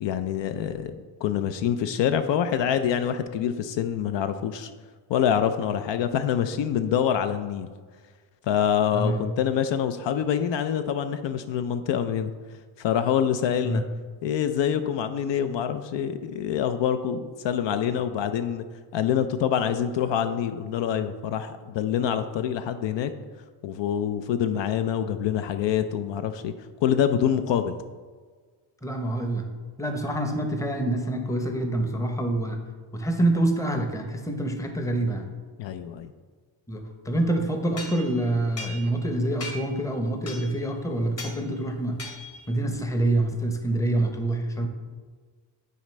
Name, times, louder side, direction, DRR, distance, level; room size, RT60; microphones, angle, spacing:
voice 1, 0.0-4.7 5.1-7.7 8.4-12.3 12.8-13.8 14.2-18.6 18.9-23.1 23.6-26.5 26.8-27.7 35.6-36.1, left 9 dB, 65° left, 9 dB, 0.5 m, -26 dB
voice 2, 8.9-9.3 13.6-13.8 28.8-29.5 29.8-32.6 32.9-35.3 36.7-42.0 42.5-44.7, right 1 dB, 5° left, 4 dB, 0.7 m, -26 dB
sound 1, 37.8-39.1 39.4-39.8 40.3-40.7 41.2-41.4 42.0-42.5, left 2 dB, 30° left, 1.1 m, -39 dB
9.4 x 4.1 x 3.2 m, 1.5 s
cardioid pair, 105°, 47 cm